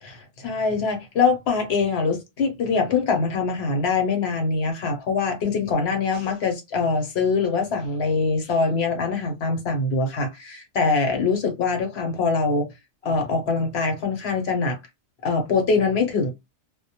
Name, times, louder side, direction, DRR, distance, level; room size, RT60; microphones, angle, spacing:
voice 1, 0.0-12.7 13.0-14.8 15.2-16.3, left 4 dB, 60° left, 0.9 m, -23 dB
2.1 x 2.1 x 2.8 m
omnidirectional pair, 1.3 m